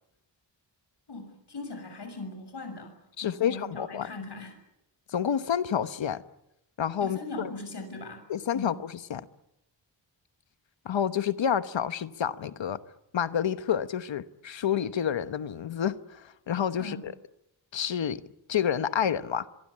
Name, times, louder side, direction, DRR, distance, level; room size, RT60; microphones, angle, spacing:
voice 1, 1.1-2.9 3.2-4.5 7.0-8.3 8.5-8.8 16.8-17.0, left 3 dB, 65° left, 6.6 m, -39 dB
voice 2, 3.2-4.1 5.1-6.2 6.8-7.5 8.3-9.2 10.8-12.8 13.1-17.1 17.7-18.2 18.5-19.5, left 8 dB, 85° left, 1.1 m, -29 dB
24.0 x 24.0 x 8.6 m
wide cardioid pair, 135°, 44 cm